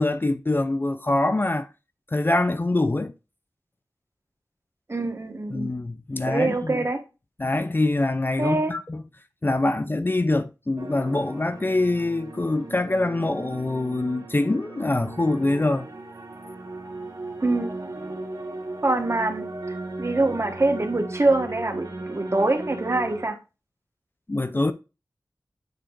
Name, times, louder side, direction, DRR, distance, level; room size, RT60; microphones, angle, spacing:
voice 1, 0.0-1.7 2.1-3.1 5.5-6.8 7.4-9.0 9.4-15.9 24.3-24.7, left 2 dB, 30° left, 0.4 m, -24 dB
voice 2, 4.9-5.7 6.3-7.0 8.4-8.7 17.4-17.8 18.8-19.4 20.0-23.3, right 2 dB, 40° right, 1.3 m, -24 dB
sound 1, 10.8-23.3, right 2 dB, 65° right, 2.3 m, -37 dB
9.1 x 4.4 x 2.5 m
wide cardioid pair, 70°, 7 cm